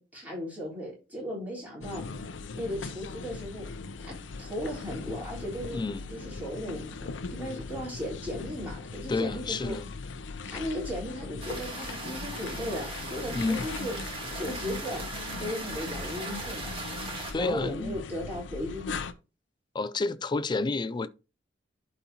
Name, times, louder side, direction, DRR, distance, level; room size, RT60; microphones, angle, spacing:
voice 1, 0.0-2.0 2.5-3.7 4.0-5.8 6.1-9.8 10.4-14.0 14.3-15.0 15.4-16.8 17.4-19.0, equal, 10° right, 3.9 m, -36 dB
sound 1, 1.8-19.1, left 4 dB, 70° left, 0.6 m, -39 dB
voice 2, 5.7-6.0 9.1-9.9 13.3-13.7 17.3-18.0 19.7-21.1, left 3 dB, 25° left, 0.3 m, -30 dB
sound 2, 11.4-17.3, right 2 dB, 30° right, 2.0 m, -38 dB
11.5 x 4.2 x 2.8 m
head